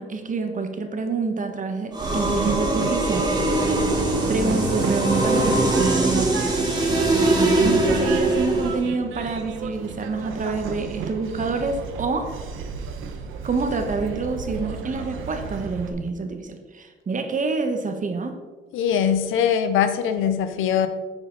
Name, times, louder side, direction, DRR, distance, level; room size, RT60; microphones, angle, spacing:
voice 1, 0.0-3.3 4.3-6.6 7.4-12.3 13.4-18.3, right 4 dB, 40° right, 5 dB, 1.5 m, -27 dB
sound 1, 1.9-8.9, right 2 dB, 20° right, 2.2 m, -22 dB
Train, 2.0-15.9, right 6 dB, 90° right, 1.1 m, -33 dB
voice 2, 18.7-20.9, left 8 dB, 90° left, 10 dB, 0.8 m, -21 dB
10.5 x 7.1 x 4.0 m, 1.4 s
cardioid pair, 90°, 20 cm